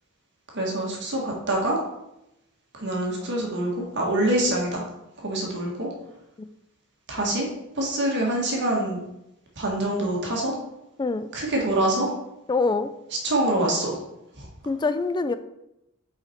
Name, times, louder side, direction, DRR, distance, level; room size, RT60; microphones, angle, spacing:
voice 1, 0.5-1.8 2.7-4.8 5.2-5.9 7.1-7.5 7.7-9.0 9.6-10.5 11.3-12.1 13.2-14.0 14.4-14.5, right 1 dB, 55° right, -1 dB, 1.6 m, -25 dB
voice 2, 12.5-12.9 14.7-15.4, left 3 dB, 20° left, 11 dB, 0.3 m, -24 dB
5.6 x 5.0 x 4.4 m, 0.88 s
head